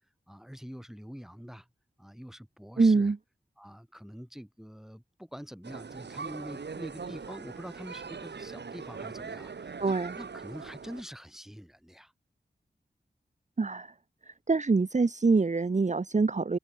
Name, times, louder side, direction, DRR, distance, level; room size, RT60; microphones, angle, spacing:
voice 1, 0.3-1.7 2.0-3.1 3.6-12.1, equal, ahead, 6.2 m, -45 dB
voice 2, 2.8-3.2 9.8-10.1 13.6-13.9 14.5-16.6, right 4 dB, 45° right, 1.2 m, -25 dB
sound 1, 5.6-11.0, right 5 dB, 90° right, 3.0 m, -41 dB
wide cardioid pair, 80°, 17 cm